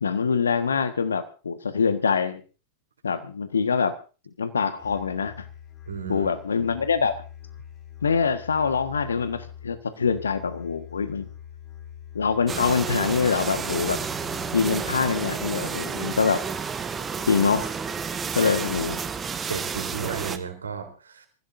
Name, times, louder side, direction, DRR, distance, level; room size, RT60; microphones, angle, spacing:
voice 1, 0.0-2.4 3.0-3.9 4.4-5.5 6.1-7.2 8.0-11.3 12.1-14.0 14.5-16.4 17.3-17.7 18.3-19.0, left 5 dB, 70° left, 10 dB, 1.6 m, -24 dB
Musical instrument, 4.8-14.7, left 10 dB, 30° left, 5.3 m, -44 dB
voice 2, 5.9-6.3 18.4-18.6 19.5-21.3, right 6 dB, 75° right, 4 dB, 3.8 m, -33 dB
sound 1, 12.5-20.4, right 6 dB, 20° right, 1.2 m, -31 dB
26.5 x 15.5 x 2.7 m, 0.34 s
figure-of-eight pair, 90°, 0 cm